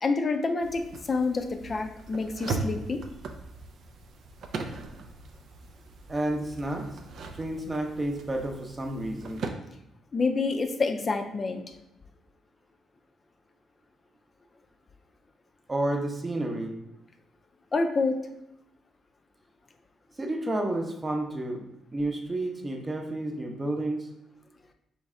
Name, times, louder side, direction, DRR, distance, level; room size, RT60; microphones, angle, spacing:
voice 1, 0.0-3.0 10.1-11.6 17.7-18.2, left 3 dB, 35° left, 6 dB, 0.4 m, -27 dB
sound 1, 0.6-9.5, right 4 dB, 65° right, 0.5 m, -39 dB
voice 2, 6.1-6.9 7.3-9.4 15.7-16.8 20.2-21.6 21.9-24.1, right 1 dB, 20° right, 3 dB, 0.7 m, -30 dB
4.1 x 3.2 x 3.6 m, 0.85 s
cardioid pair, 90°, 0 cm